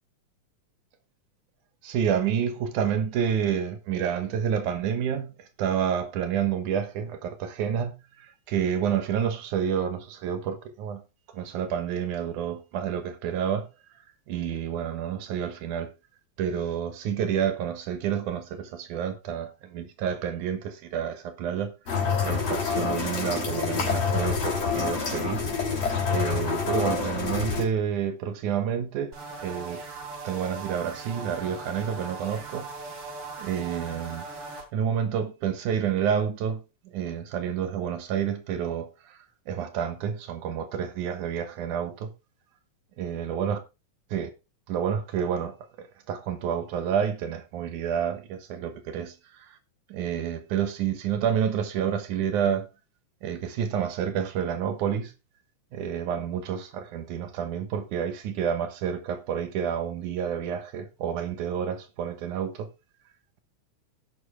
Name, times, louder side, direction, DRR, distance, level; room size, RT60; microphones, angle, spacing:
voice 1, 1.8-11.0 11.3-13.7 14.3-15.9 16.4-21.7 22.2-25.4 25.7-25.8 26.1-29.1 29.4-29.8 30.2-32.7 33.4-36.6 36.9-39.2 39.5-42.1 43.0-43.6 44.1-44.3 44.7-49.6 49.9-52.7 53.2-55.1 55.7-62.7, right 8 dB, 85° right, 2.8 m, -29 dB
sound 1, 21.9-27.6, left 5 dB, 55° left, 4.1 m, -27 dB
sound 2, 29.1-34.7, right 3 dB, 45° right, 3.5 m, -39 dB
16.5 x 5.9 x 3.5 m
omnidirectional pair, 3.5 m